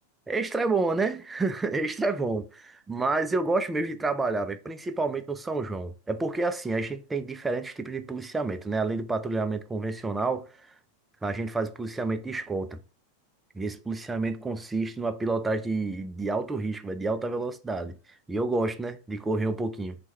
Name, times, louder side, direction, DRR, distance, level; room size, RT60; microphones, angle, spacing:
voice 1, 0.3-10.5 11.2-12.8 13.5-18.0 18.3-20.0, right 3 dB, 10° right, 0.4 m, -29 dB
4.5 x 2.3 x 4.1 m
figure-of-eight pair, 90°, 0 cm